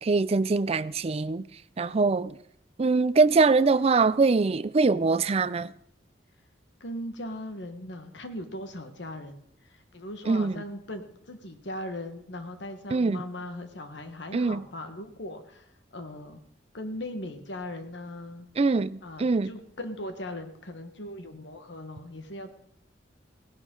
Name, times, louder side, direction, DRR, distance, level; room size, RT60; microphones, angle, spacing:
voice 1, 0.0-1.4 1.8-2.4 2.8-5.7 10.3-10.6 12.9-13.2 14.3-14.6 18.6-19.5, right 4 dB, 35° right, 0.4 m, -23 dB
voice 2, 6.8-9.4 9.7-16.4 16.7-18.5 19.0-22.5, left 1 dB, 80° left, 1.5 m, -39 dB
17.5 x 11.0 x 3.8 m
head